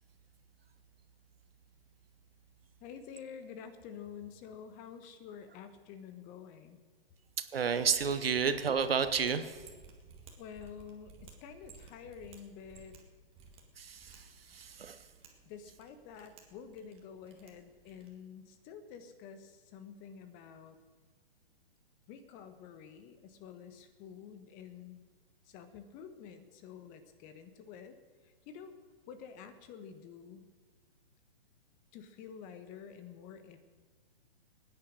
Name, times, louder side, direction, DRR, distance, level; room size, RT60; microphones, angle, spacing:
voice 1, 2.8-6.8 10.4-13.0 15.4-20.8 22.1-25.0 25.4-28.0 28.2-28.7 29.1-30.4 31.9-33.6, left 7 dB, 25° left, 10 dB, 1.2 m, -49 dB
voice 2, 7.5-9.7 13.8-15.1, right 6 dB, 75° right, 10 dB, 1.4 m, -31 dB
Mechanisms, 7.8-18.2, right 4 dB, 20° right, 2.0 m, -58 dB
20.0 x 9.8 x 6.5 m, 1.4 s
hypercardioid pair, 130°, 30 cm